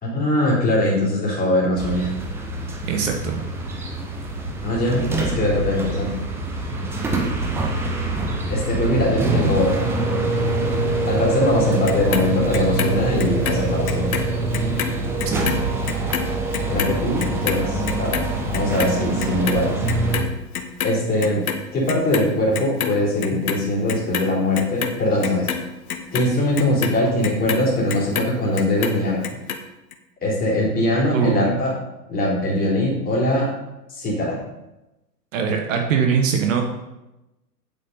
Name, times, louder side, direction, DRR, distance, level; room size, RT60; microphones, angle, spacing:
voice 1, 0.0-2.1 4.6-6.2 8.5-9.9 11.0-14.1 16.7-18.2 18.5-19.8 20.8-21.4 21.7-25.5 26.1-29.2 30.2-31.7 32.1-33.5 33.9-34.4, left 1 dB, 20° left, -5 dB, 3.7 m, -21 dB
sound 1, 1.8-20.2, right 2 dB, 5° right, 0.5 m, -25 dB
voice 2, 2.8-3.4 15.2-15.5 31.1-31.6 35.3-36.6, right 6 dB, 50° right, 4 dB, 1.4 m, -22 dB
Clock, 11.9-14.3 14.5-20.9 21.2-22.3 22.5-23.6 23.9-28.3 28.6-29.6 29.9-30.0, left 8 dB, 60° left, 1.2 m, -27 dB
9.0 x 8.0 x 4.1 m, 0.97 s
hypercardioid pair, 120°, 49 cm